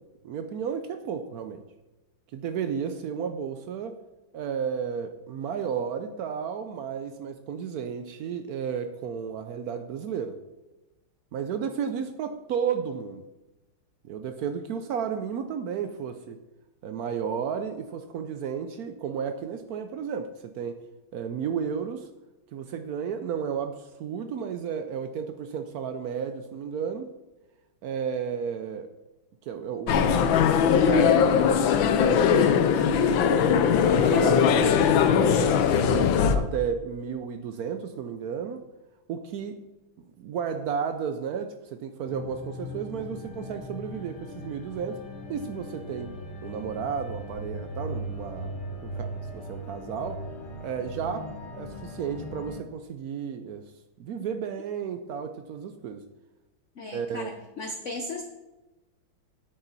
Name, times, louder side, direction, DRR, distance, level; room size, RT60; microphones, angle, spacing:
voice 1, 0.2-1.6 2.3-4.0 4.3-10.4 11.3-13.2 14.0-16.4 16.8-20.8 21.1-22.1 22.5-27.1 27.8-28.9 29.4-31.4 31.8-33.6 33.9-34.8 35.2-38.6 39.1-39.6 40.0-45.0 45.3-48.5 48.8-50.3 50.6-51.3 51.5-53.6 54.0-56.0 56.9-57.3, right 7 dB, 85° right, 8 dB, 0.8 m, -33 dB
sound 1, 29.9-36.4, left 7 dB, 70° left, 1.4 m, -20 dB
sound 2, 42.1-52.6, equal, 90° left, 2.2 m, -39 dB
voice 2, 56.8-58.2, left 2 dB, 55° left, 4 dB, 0.8 m, -36 dB
9.9 x 8.8 x 4.1 m, 1.0 s
omnidirectional pair, 2.3 m